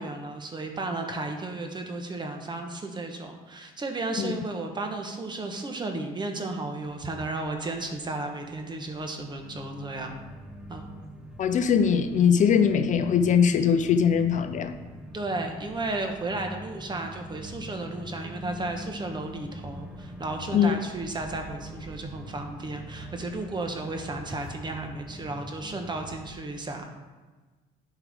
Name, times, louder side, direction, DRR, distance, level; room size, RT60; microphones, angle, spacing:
voice 1, 0.0-10.2 10.7-10.9 15.1-26.9, right 2 dB, 25° right, 4 dB, 1.1 m, -34 dB
sound 1, 6.8-26.3, equal, 5° right, 0.7 m, -44 dB
voice 2, 11.4-14.8 20.5-20.8, left 7 dB, 50° left, 8 dB, 0.5 m, -21 dB
11.0 x 4.6 x 3.5 m, 1.3 s
cardioid pair, 110°, 17 cm